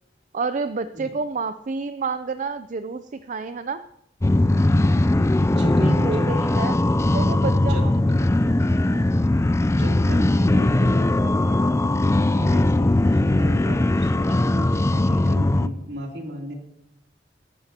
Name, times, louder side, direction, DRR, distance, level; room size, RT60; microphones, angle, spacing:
voice 1, 0.3-3.8 5.8-6.8 7.1-8.5 8.9-9.4, right 4 dB, 45° right, 11 dB, 0.4 m, -30 dB
sound 1, 4.2-15.7, left 1 dB, 15° left, 0.4 m, -20 dB
voice 2, 5.1-6.3 7.6-7.9 9.6-16.5, equal, 70° right, 0 dB, 3.0 m, -35 dB
22.5 x 12.0 x 2.9 m, 0.80 s
head